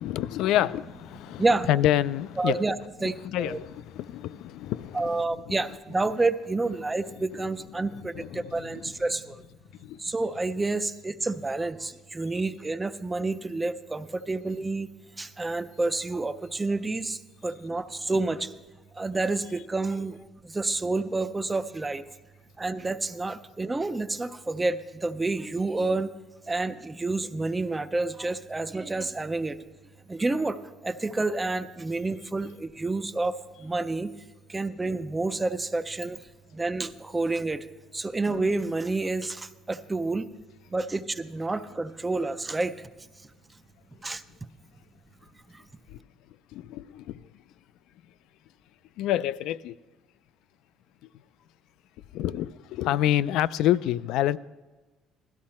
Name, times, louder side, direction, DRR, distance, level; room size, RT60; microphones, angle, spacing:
voice 1, 0.0-2.6 3.2-5.6 8.1-8.9 9.8-10.0 45.9-46.0 46.5-47.2 49.0-49.8 52.1-54.4, left 12 dB, 60° left, 0.3 m, -28 dB
voice 2, 1.4-1.7 2.4-2.8 3.0-3.6 4.9-9.4 10.0-14.9 15.2-18.5 18.9-20.2 20.4-22.0 22.6-26.1 26.5-29.6 30.1-34.1 34.5-37.7 37.9-40.3 40.7-42.8 44.0-44.2 45.5-45.6, right 3 dB, 10° right, 0.4 m, -29 dB
17.0 x 13.0 x 4.3 m
cardioid pair, 180°, 0 cm